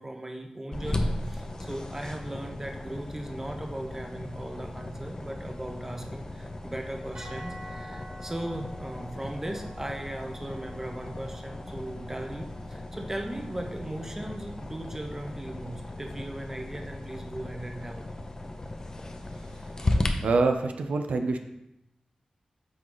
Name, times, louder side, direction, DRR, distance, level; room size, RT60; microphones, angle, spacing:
voice 1, 0.0-18.2, right 1 dB, 15° right, 3 dB, 0.8 m, -38 dB
sound 1, 0.7-20.1, left 1 dB, 30° left, 0.6 m, -36 dB
sound 2, 7.1-15.4, equal, 70° right, 2.3 m, -49 dB
voice 2, 20.2-21.4, right 3 dB, 85° right, 6 dB, 0.5 m, -25 dB
7.7 x 3.9 x 3.8 m, 0.87 s
wide cardioid pair, 100°, 2 cm